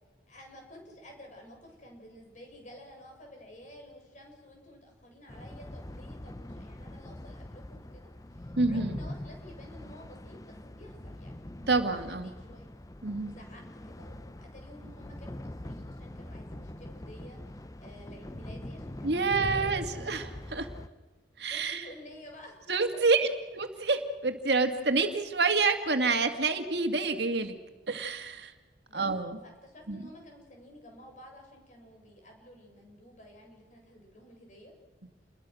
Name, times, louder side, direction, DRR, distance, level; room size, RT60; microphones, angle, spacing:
voice 1, 0.3-11.4 11.9-12.7 13.2-20.3 21.5-22.7 28.9-29.1 29.4-34.7, left 1 dB, 45° left, 2 dB, 7.3 m, -51 dB
sound 1, 5.3-20.9, left 1 dB, 20° left, 0.7 m, -43 dB
voice 2, 8.6-9.0 11.7-12.3 13.0-13.3 19.0-20.7 21.4-21.9 22.7-27.6 27.9-28.5 28.9-29.4 29.9-30.0, right 3 dB, 65° right, 6 dB, 2.1 m, -28 dB
29.0 x 22.0 x 6.3 m, 1.2 s
head